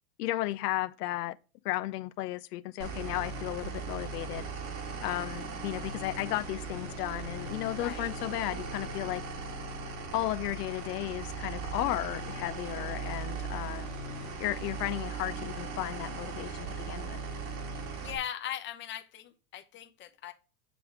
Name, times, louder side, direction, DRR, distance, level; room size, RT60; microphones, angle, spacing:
voice 1, 0.2-1.4 1.6-4.4 5.0-9.2 10.1-13.9 14.4-17.2, left 16 dB, 75° left, 0.6 m, -34 dB
sound 1, 2.8-18.2, right 4 dB, 60° right, 1.9 m, -38 dB
voice 2, 7.8-8.1 18.0-20.3, left 11 dB, 25° left, 0.8 m, -39 dB
7.4 x 3.5 x 4.6 m
supercardioid pair, 130°, 47 cm